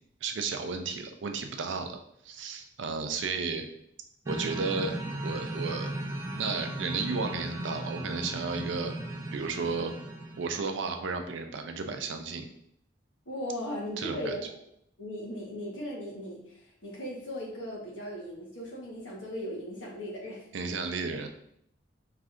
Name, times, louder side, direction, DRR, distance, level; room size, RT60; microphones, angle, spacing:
voice 1, 0.2-2.0 2.2-3.7 4.3-4.9 5.2-5.9 6.4-9.0 9.3-10.0 10.4-12.5 14.0-14.3 20.5-21.3, right 4 dB, 75° right, 6 dB, 0.5 m, -33 dB
sound 1, 4.3-10.6, right 1 dB, 15° right, 0.4 m, -36 dB
voice 2, 13.2-14.5 15.0-20.4, equal, 85° left, -3 dB, 1.3 m, -37 dB
4.8 x 3.2 x 2.5 m, 0.72 s
head